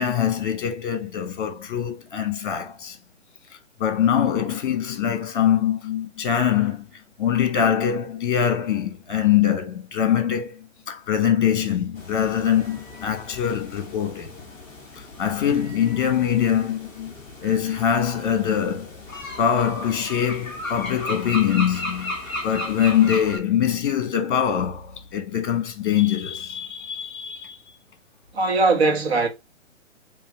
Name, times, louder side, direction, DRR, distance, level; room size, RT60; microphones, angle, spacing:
voice 1, 0.0-3.0 3.8-6.8 7.2-10.6 10.9-14.3 15.2-17.1 17.4-19.0 19.4-22.2 22.4-27.6, left 9 dB, 40° left, 1.2 m, -23 dB
sound 1, 11.9-23.4, left 1 dB, 5° left, 0.5 m, -36 dB
voice 2, 28.3-29.3, right 3 dB, 55° right, 1.4 m, -20 dB
4.8 x 2.7 x 3.0 m
figure-of-eight pair, 135°, 38 cm